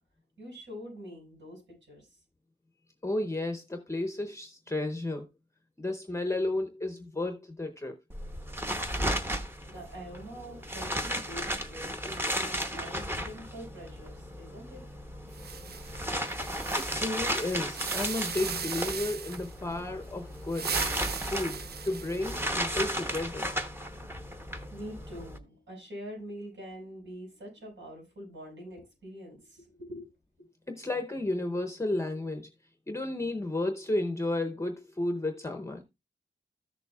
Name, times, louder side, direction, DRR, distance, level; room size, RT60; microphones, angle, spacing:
voice 1, 0.4-2.1 9.7-14.8 24.7-30.1, equal, 75° right, 6.4 m, -45 dB
voice 2, 3.0-5.3 5.8-8.0 16.8-20.7 21.3-23.5 30.7-32.5 32.9-35.8, left 2 dB, 15° left, 0.7 m, -32 dB
sound 1, 8.1-25.4, equal, 10° right, 0.9 m, -35 dB
sound 2, 15.3-19.5 20.3-22.7, right 7 dB, 55° right, 0.5 m, -38 dB
14.0 x 6.8 x 2.3 m
wide cardioid pair, 145°, 19 cm